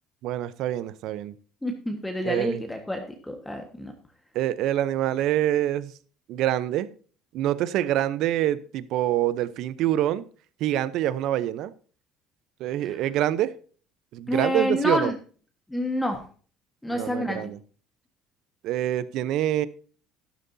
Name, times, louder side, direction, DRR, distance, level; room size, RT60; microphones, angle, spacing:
voice 1, 0.2-1.3 2.2-2.6 4.3-5.9 6.3-6.9 7.3-10.2 10.6-11.7 12.6-13.5 14.1-15.1 16.9-17.6 18.6-19.7, right 12 dB, 65° right, 0.7 m, -25 dB
voice 2, 1.6-3.9 14.3-15.1 15.7-16.2 16.8-17.5, left 1 dB, 5° left, 1.5 m, -28 dB
12.5 x 11.5 x 2.7 m
cardioid pair, 130°, 0 cm